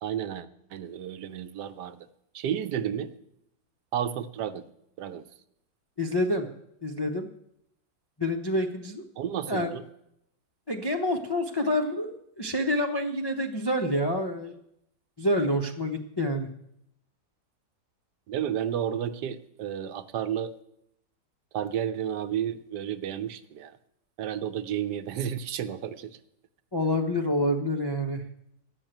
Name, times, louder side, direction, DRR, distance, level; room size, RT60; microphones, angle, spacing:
voice 1, 0.0-2.0 2.3-3.1 3.9-4.6 5.0-5.2 9.2-9.8 18.3-20.5 21.5-23.7 24.2-26.2, right 9 dB, 70° right, 11 dB, 1.2 m, -32 dB
voice 2, 6.0-6.5 6.8-7.3 8.2-9.0 9.5-9.8 10.7-14.5 15.2-16.5 26.7-28.2, left 1 dB, 40° left, 3 dB, 0.3 m, -27 dB
12.0 x 6.3 x 8.9 m, 0.79 s
omnidirectional pair, 1.9 m